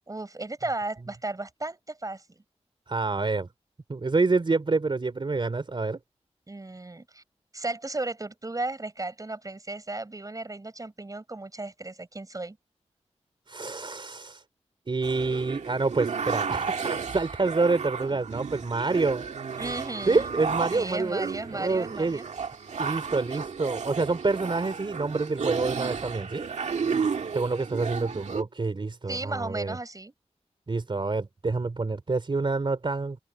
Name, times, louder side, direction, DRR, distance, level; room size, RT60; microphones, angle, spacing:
voice 1, 0.1-2.2 6.5-7.2 7.5-12.6 19.6-20.3 20.7-22.2 29.1-30.1, right 2 dB, 30° right, 6.2 m, -35 dB
voice 2, 2.9-3.5 3.9-6.0 13.5-14.4 14.9-19.2 20.1-21.3 21.5-22.5 22.8-26.4 27.3-29.8 30.7-33.2, right 3 dB, 45° right, 3.5 m, -27 dB
sound 1, 15.0-28.4, right 5 dB, 90° right, 1.8 m, -33 dB
open air
wide cardioid pair, 80°, 12 cm